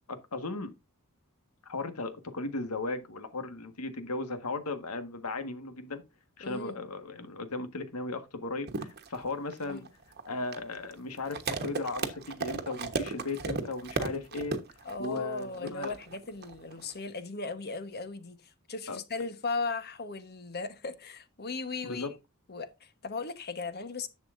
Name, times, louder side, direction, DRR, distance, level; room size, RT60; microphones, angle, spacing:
voice 1, 0.1-0.7 1.6-6.0 6.4-9.8 10.2-14.6 15.0-15.9 18.9-19.0 21.8-22.1, left 3 dB, 90° left, 1.6 m, -36 dB
voice 2, 6.4-6.8 9.6-9.9 14.8-22.1 22.5-24.1, left 4 dB, 45° left, 1.2 m, -37 dB
sound 1, 8.7-17.0, right 4 dB, 45° right, 1.2 m, -35 dB
11.0 x 7.4 x 2.6 m
head